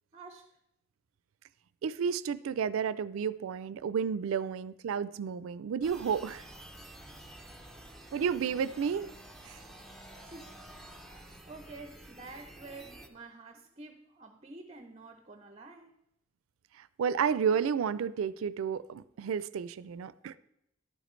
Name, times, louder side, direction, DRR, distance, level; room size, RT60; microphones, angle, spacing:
voice 1, 0.1-0.6 10.2-10.6 11.5-15.9, right 3 dB, 30° right, 0.6 m, -49 dB
voice 2, 1.8-6.4 8.1-9.1 9.5-9.6 16.8-20.4, right 7 dB, 85° right, 0.4 m, -31 dB
sound 1, 5.8-13.1, right 1 dB, ahead, 0.7 m, -50 dB
11.5 x 9.1 x 3.1 m
head